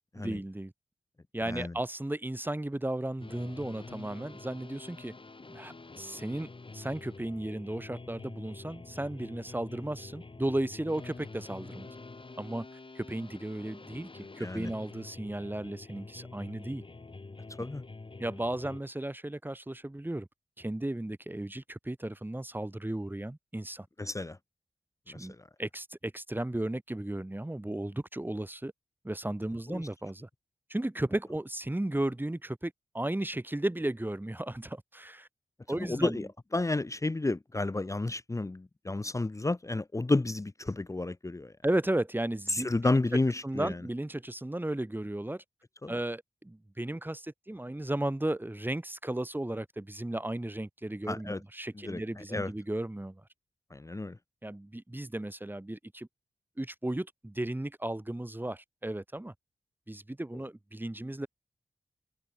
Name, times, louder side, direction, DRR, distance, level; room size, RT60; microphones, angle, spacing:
voice 1, 0.1-0.7 1.3-5.1 5.5-11.9 12.4-12.7 12.9-16.8 18.2-20.3 20.6-23.9 25.1-25.3 25.6-28.7 29.0-30.3 30.7-35.3 35.7-36.3 41.6-42.7 43.4-45.4 45.9-53.2 54.4-56.1 56.6-59.3 59.9-61.3, right 1 dB, 15° right, 1.5 m, -35 dB
sound 1, 3.2-18.8, left 3 dB, 40° left, 5.3 m, -47 dB
voice 2, 14.4-14.7 17.6-17.8 24.0-24.4 25.1-25.5 29.7-29.9 35.7-41.5 42.5-43.8 45.8-46.0 51.1-51.4 51.8-52.5 53.7-54.2, left 2 dB, 25° left, 0.9 m, -31 dB
cardioid pair, 40°, 13 cm